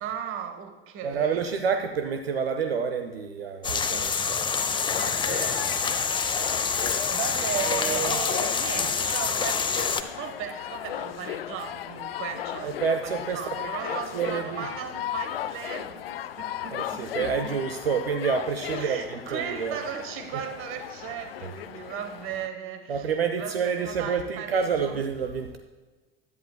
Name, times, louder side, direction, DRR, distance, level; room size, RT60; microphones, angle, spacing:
voice 1, 0.0-1.4 4.9-6.7 7.1-17.5 18.7-23.1 23.4-25.0, right 8 dB, 45° right, 8 dB, 1.2 m, -37 dB
voice 2, 1.0-4.4 7.6-8.2 12.6-13.8 14.1-14.7 16.7-19.8 20.3-20.4 22.9-25.6, right 6 dB, 80° right, 7 dB, 0.6 m, -28 dB
sound 1, 3.6-10.0, left 5 dB, 15° left, 0.6 m, -27 dB
sound 2, 4.5-22.5, left 11 dB, 75° left, 0.4 m, -36 dB
15.5 x 11.0 x 2.2 m, 1.3 s
figure-of-eight pair, 65°, 30 cm